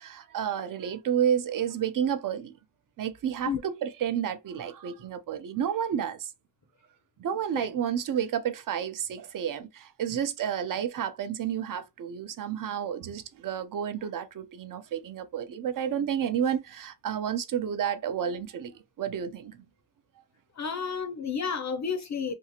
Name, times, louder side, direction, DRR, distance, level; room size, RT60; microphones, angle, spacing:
voice 1, 0.0-2.5 3.0-6.3 7.2-18.7 19.0-19.6, right 9 dB, 50° right, 0.5 m, -30 dB
voice 2, 20.6-22.3, left 6 dB, 45° left, 0.5 m, -31 dB
2.6 x 2.4 x 2.8 m
cardioid pair, 95°, 41 cm